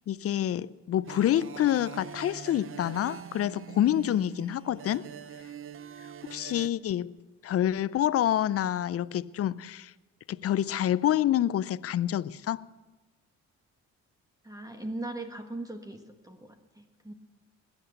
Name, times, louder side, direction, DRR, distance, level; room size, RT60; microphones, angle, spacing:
voice 1, 0.1-5.1 6.3-7.2 7.4-9.9 10.3-12.7, left 11 dB, 50° left, 0.5 m, -27 dB
sound 1, 1.0-6.7, right 8 dB, 45° right, 0.7 m, -43 dB
voice 2, 14.4-17.1, right 2 dB, 10° right, 1.5 m, -39 dB
21.0 x 8.1 x 8.0 m
cardioid pair, 90°, 30 cm